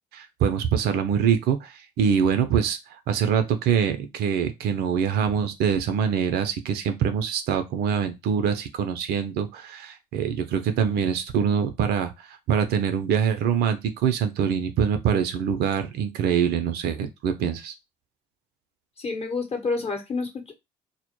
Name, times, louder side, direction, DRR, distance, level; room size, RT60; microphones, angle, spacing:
voice 1, 0.1-2.8 3.1-17.7, right 7 dB, 65° right, 0.5 m, -24 dB
voice 2, 19.0-20.6, left 4 dB, 35° left, 0.8 m, -29 dB
2.1 x 2.0 x 2.9 m
hypercardioid pair, 55°, 17 cm